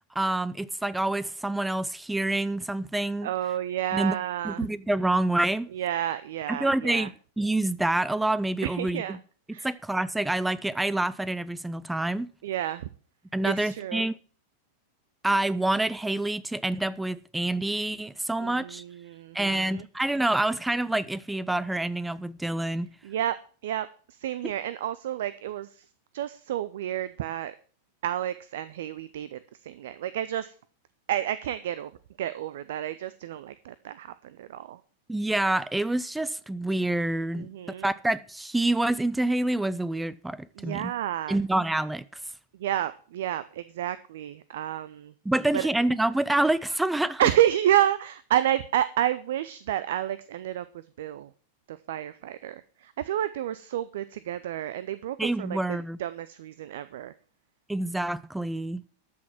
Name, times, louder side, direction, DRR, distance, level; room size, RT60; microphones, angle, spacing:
voice 1, 0.2-3.3 3.9-4.2 4.4-5.7 6.5-9.2 9.6-12.3 13.3-14.1 15.2-18.8 19.3-22.9 35.1-37.5 37.8-40.9 41.3-42.0 45.3-47.2 55.2-56.0 57.7-58.8, right 1 dB, 5° right, 0.5 m, -27 dB
voice 2, 3.2-4.7 5.7-7.1 8.6-9.2 9.5-9.7 12.4-12.9 13.4-14.1 18.4-19.9 23.0-23.4 23.6-25.9 26.1-27.5 28.0-30.5 31.1-31.9 32.2-34.8 37.3-37.9 40.6-41.4 42.6-45.1 45.5-45.7 47.2-50.7 51.0-51.3 51.7-57.1, right 12 dB, 55° right, 0.6 m, -30 dB
13.5 x 6.2 x 7.3 m
figure-of-eight pair, 90°, 0 cm